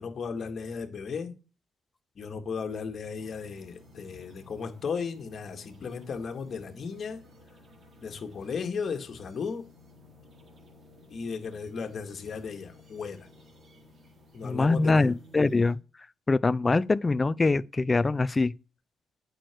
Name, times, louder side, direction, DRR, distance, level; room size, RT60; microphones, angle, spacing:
voice 1, 0.0-1.4 2.2-7.2 8.0-9.7 11.1-13.3 14.3-15.1, left 5 dB, 50° left, 2.0 m, -35 dB
sound 1, 3.2-15.7, left 1 dB, 50° right, 4.1 m, -55 dB
voice 2, 14.4-15.8 16.3-18.5, left 3 dB, 25° left, 0.4 m, -23 dB
9.0 x 6.5 x 4.6 m
cardioid pair, 90°, 0 cm